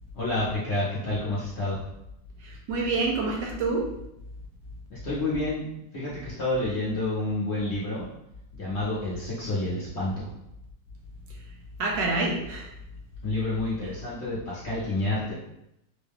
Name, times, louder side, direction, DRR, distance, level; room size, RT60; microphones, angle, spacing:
voice 1, 0.1-1.8 4.9-5.7 5.9-8.0 8.5-10.3 13.2-15.3, left 2 dB, 50° left, -7 dB, 0.9 m, -29 dB
voice 2, 2.4-3.9 11.8-12.7, right 3 dB, 80° right, -1 dB, 1.4 m, -27 dB
3.7 x 2.2 x 3.5 m, 0.82 s
omnidirectional pair, 2.0 m